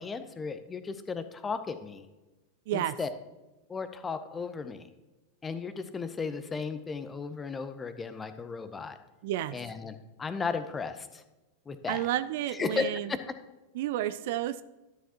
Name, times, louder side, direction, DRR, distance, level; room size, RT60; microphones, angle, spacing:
voice 1, 0.0-2.0 2.7-3.1 3.7-4.9 5.4-9.0 9.5-11.2 11.7-12.1 12.5-13.2, left 5 dB, 15° left, 10 dB, 0.7 m, -35 dB
voice 2, 9.2-9.6 11.9-13.2 13.7-14.6, right 13 dB, 50° right, 14 dB, 0.3 m, -31 dB
12.0 x 7.1 x 2.9 m, 1.1 s
figure-of-eight pair, 90°, 0 cm